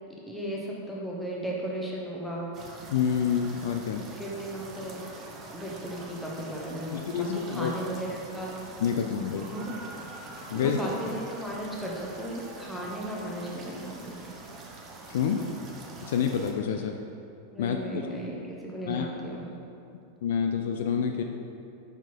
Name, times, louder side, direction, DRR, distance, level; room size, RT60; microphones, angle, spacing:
voice 1, 0.3-2.5 3.9-5.0 5.5-8.5 9.5-9.8 10.5-14.2 17.5-19.5, right 1 dB, 5° left, -4 dB, 1.1 m, -35 dB
sound 1, 2.5-16.5, right 3 dB, 30° right, 0.8 m, -45 dB
voice 2, 2.9-4.1 6.9-7.7 8.8-9.5 10.5-10.8 15.1-15.5 16.1-17.0 17.6-18.1 18.9-19.1 20.2-21.2, left 7 dB, 55° left, 5 dB, 0.3 m, -28 dB
5.8 x 4.4 x 4.5 m, 2.6 s
figure-of-eight pair, 90°, 0 cm